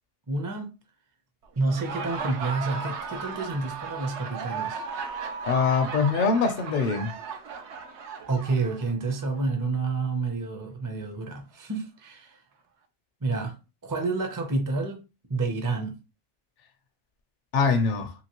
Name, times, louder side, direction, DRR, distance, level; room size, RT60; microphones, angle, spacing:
voice 1, 0.3-0.7 1.6-4.8 8.3-12.4 13.2-13.5 13.8-15.0 15.3-16.0, right 3 dB, 25° right, 0.4 m, -29 dB
Laughter, 1.6-9.2, right 5 dB, 80° right, 0.9 m, -36 dB
voice 2, 5.5-7.1 17.5-18.1, left 5 dB, 55° left, 0.6 m, -23 dB
2.9 x 2.9 x 2.9 m
omnidirectional pair, 1.2 m